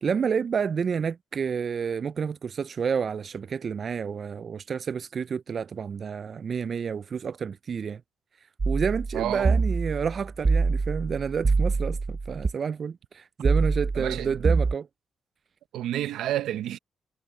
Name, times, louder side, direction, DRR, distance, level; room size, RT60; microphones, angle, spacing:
voice 1, 0.0-8.0 8.7-14.9, right 6 dB, 60° right, 0.4 m, -29 dB
sound 1, 8.6-12.5 13.4-14.7, right 4 dB, 40° right, 1.1 m, -25 dB
voice 2, 9.1-9.6 13.9-14.4 15.7-16.8, right 12 dB, 85° right, 0.8 m, -30 dB
supercardioid pair, 50°, 0 cm